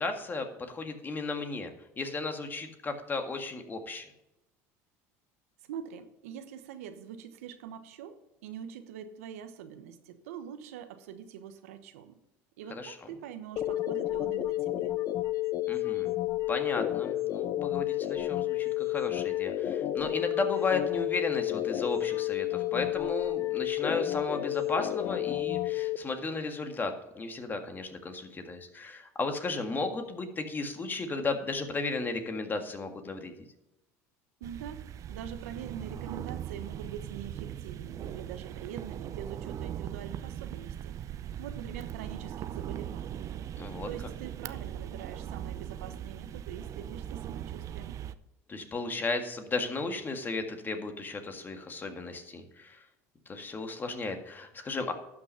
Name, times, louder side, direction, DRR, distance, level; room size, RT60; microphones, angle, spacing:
voice 1, 0.0-1.7 2.0-4.0 12.7-13.0 15.7-16.1 16.5-33.3 43.6-43.9 48.5-52.8 53.3-54.9, left 3 dB, 25° left, 6 dB, 1.8 m, -34 dB
voice 2, 5.7-12.2 12.6-15.0 34.4-34.8 35.1-43.2 43.8-48.0, right 8 dB, 85° right, 9 dB, 1.1 m, -44 dB
sound 1, 13.6-26.0, left 14 dB, 50° left, 0.7 m, -31 dB
sound 2, 34.4-48.1, right 10 dB, 45° right, 0.6 m, -40 dB
12.0 x 6.1 x 5.7 m, 0.90 s
supercardioid pair, 95°, 8 cm